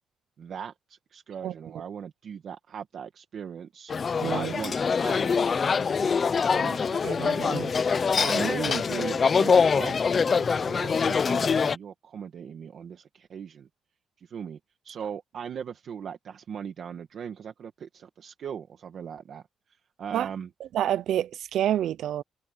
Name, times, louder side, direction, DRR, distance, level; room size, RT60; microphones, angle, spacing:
voice 1, 0.4-9.9 10.3-13.7 14.2-14.6 14.8-20.5, right 7 dB, 50° right, 1.5 m, -39 dB
sound 1, 3.9-11.8, left 5 dB, 30° left, 0.5 m, -24 dB
voice 2, 4.2-4.5 7.0-7.7 20.1-20.3 20.7-22.2, right 11 dB, 70° right, 0.4 m, -28 dB
cardioid pair, 180°, 0 cm